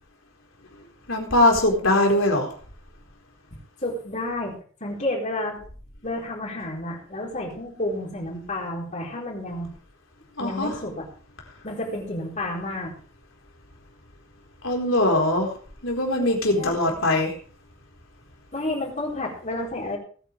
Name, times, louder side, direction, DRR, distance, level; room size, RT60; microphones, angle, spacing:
voice 1, 1.1-2.5 10.4-10.8 14.6-15.5 15.8-17.3, left 1 dB, 70° left, 1 dB, 4.3 m, -21 dB
voice 2, 3.8-5.6 6.0-9.7 10.4-11.0 11.6-12.9 16.6-16.7 18.5-20.0, left 1 dB, 35° left, -2 dB, 4.2 m, -30 dB
20.0 x 9.2 x 3.4 m, 0.42 s
head